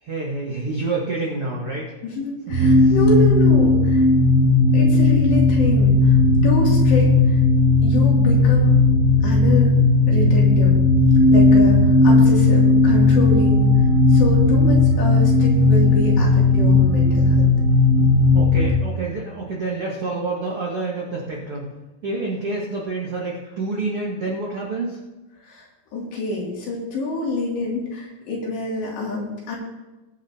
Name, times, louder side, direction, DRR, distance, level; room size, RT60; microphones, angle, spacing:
voice 1, 0.0-1.9 2.6-2.9 18.3-21.7 22.0-25.0, right 3 dB, 65° right, -4 dB, 1.3 m, -28 dB
voice 2, 2.0-4.1 4.7-7.4 7.8-8.7 9.2-9.7 10.1-10.8 11.3-17.5 25.4-29.6, left 2 dB, 65° left, -3 dB, 5.0 m, -27 dB
sound 1, 2.5-18.7, left 2 dB, 20° right, 2.6 m, -15 dB
22.0 x 9.9 x 2.9 m, 1.1 s
omnidirectional pair, 5.4 m